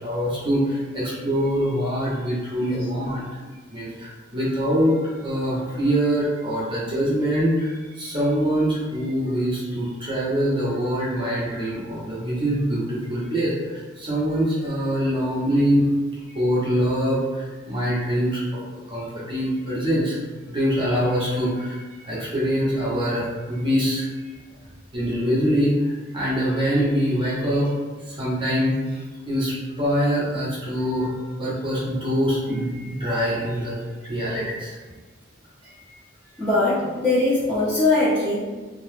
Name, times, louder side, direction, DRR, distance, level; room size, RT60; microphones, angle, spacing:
voice 1, 0.0-3.3 3.7-5.0 5.2-13.5 14.0-15.8 16.3-18.4 18.9-20.2 20.5-24.1 24.9-25.7 26.1-27.7 28.1-28.8 29.3-31.1 31.4-33.8 34.1-34.8, equal, 25° right, -8 dB, 0.8 m, -24 dB
voice 2, 36.4-38.4, left 2 dB, 5° left, -15 dB, 0.8 m, -21 dB
2.9 x 2.0 x 3.1 m, 1.4 s
head